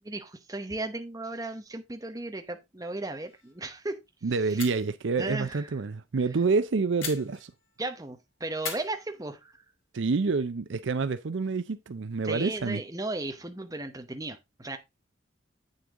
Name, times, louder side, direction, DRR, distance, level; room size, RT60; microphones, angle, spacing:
voice 1, 0.0-4.0 4.5-4.6 5.2-5.6 7.8-9.4 12.2-14.8, right 2 dB, 20° right, 1.0 m, -35 dB
sound 1, 3.3-3.7 3.9-4.0 4.5-5.0 7.0-7.9 8.6-9.7, left 5 dB, 90° left, 2.6 m, -41 dB
voice 2, 4.2-7.5 9.9-12.8, right 4 dB, 70° right, 0.5 m, -28 dB
8.6 x 6.5 x 3.6 m
head